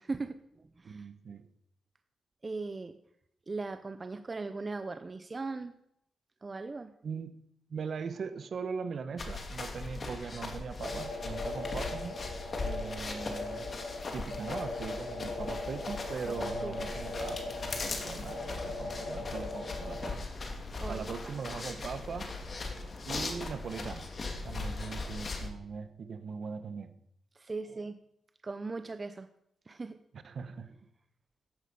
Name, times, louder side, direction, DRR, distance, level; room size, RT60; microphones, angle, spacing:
voice 1, 0.0-1.0 2.4-3.0 3.5-5.7 6.4-6.9 16.3-16.9 20.8-21.0 27.3-28.0 28.4-29.3 29.7-30.0, right 3 dB, 30° right, 0.7 m, -39 dB
voice 2, 0.8-1.5 7.0-7.4 7.7-12.2 12.6-13.7 14.1-20.2 20.9-22.3 23.0-24.1 24.4-26.9 27.7-27.9 30.1-30.7, right 5 dB, 60° right, 1.2 m, -40 dB
sound 1, 9.2-25.5, left 3 dB, 40° left, 2.3 m, -39 dB
sound 2, 10.8-20.1, left 2 dB, 65° left, 5.9 m, -39 dB
13.5 x 11.0 x 5.5 m
cardioid pair, 100°, 0 cm